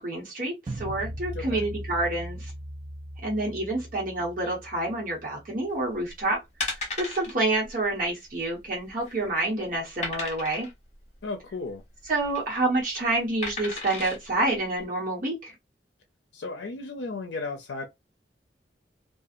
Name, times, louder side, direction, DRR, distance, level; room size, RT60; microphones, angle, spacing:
voice 1, 0.0-2.5 3.2-6.4 6.7-10.7 12.1-15.5, right 2 dB, 50° right, 1.1 m, -28 dB
sound 1, 0.7-5.7, right 1 dB, 30° right, 0.3 m, -39 dB
voice 2, 1.3-1.7 11.2-11.8 16.3-17.8, left 3 dB, 85° left, 0.5 m, -34 dB
sound 2, 5.9-6.1 6.6-7.3 7.7-8.1 8.8-9.2 10.0-10.7 12.0-12.4 13.4-14.2 14.8-14.9, left 3 dB, 40° left, 1.2 m, -34 dB
2.7 x 2.3 x 2.4 m
head